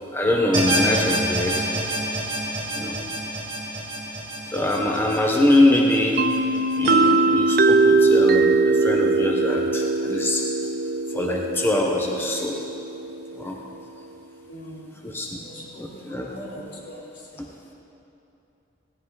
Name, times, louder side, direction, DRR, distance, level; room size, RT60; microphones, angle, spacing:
voice 1, 0.1-1.7 2.7-3.0 4.5-6.2 6.8-10.4 11.1-12.6 13.3-13.6 15.0-15.3 15.8-16.3 17.4-17.5, left 1 dB, 10° left, 0 dB, 1.0 m, -23 dB
sound 1, 0.5-6.9, right 1 dB, 25° right, 2.7 m, -28 dB
sound 2, 6.2-13.8, right 3 dB, 55° right, 0.4 m, -21 dB
voice 2, 14.5-17.5, equal, 80° left, -5 dB, 3.5 m, -42 dB
17.5 x 15.5 x 4.0 m, 2.8 s
head